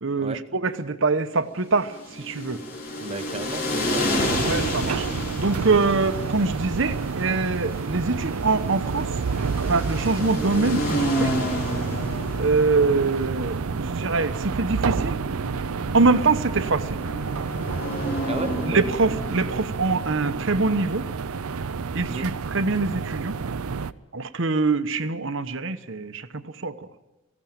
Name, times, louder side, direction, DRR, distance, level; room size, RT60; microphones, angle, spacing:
voice 1, 0.0-2.6 4.4-5.1 5.4-9.1 9.7-11.3 12.4-15.2 15.9-17.0 18.7-21.1 21.9-23.3 24.1-26.9, right 3 dB, 55° right, 11 dB, 0.9 m, -24 dB
sound 1, 1.8-19.7, equal, 40° left, 4.1 m, -31 dB
voice 2, 3.0-4.1 18.2-18.8 22.1-22.3, right 2 dB, 25° right, 10 dB, 0.9 m, -34 dB
sound 2, 4.2-23.9, right 5 dB, 80° right, 0.6 m, -29 dB
19.0 x 16.0 x 9.0 m, 1.1 s
head